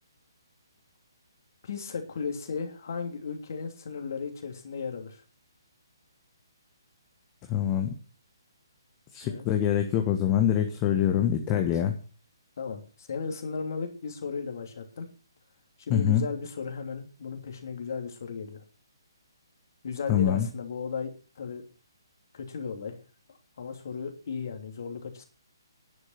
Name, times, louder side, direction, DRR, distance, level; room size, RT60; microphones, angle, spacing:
voice 1, 1.6-5.2 9.2-9.4 11.5-11.8 12.6-15.1 15.8-18.6 19.8-21.6 22.3-23.0 23.6-25.2, left 5 dB, 45° left, 5 dB, 3.0 m, -35 dB
voice 2, 7.5-7.9 9.1-11.9 15.9-16.2 20.1-20.5, left 10 dB, 20° left, 5 dB, 1.4 m, -24 dB
11.0 x 9.8 x 5.7 m, 0.36 s
figure-of-eight pair, 135°, 2 cm